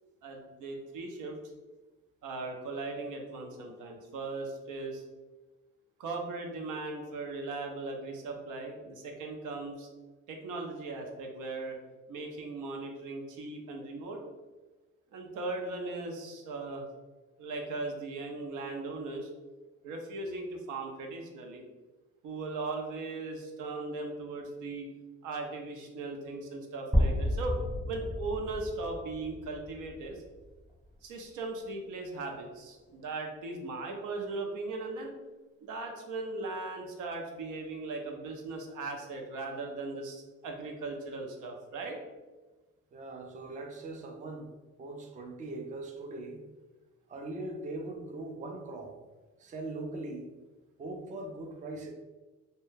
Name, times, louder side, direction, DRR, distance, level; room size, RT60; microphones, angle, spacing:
voice 1, 0.2-1.4 2.2-5.0 6.0-9.9 10.3-11.8 12.1-14.2 15.1-16.8 17.4-19.3 19.8-21.6 22.2-24.9 25.2-27.6 27.8-30.2 31.0-35.1 35.6-42.0, right 3 dB, 80° right, 2 dB, 0.6 m, -38 dB
sound 1, 26.9-30.9, equal, 5° right, 0.8 m, -32 dB
voice 2, 42.9-44.5 44.8-46.4 47.1-49.0 49.4-50.3 50.8-51.9, right 2 dB, 25° right, 3 dB, 0.3 m, -40 dB
2.2 x 2.1 x 3.1 m, 1.2 s
cardioid pair, 90°, 30 cm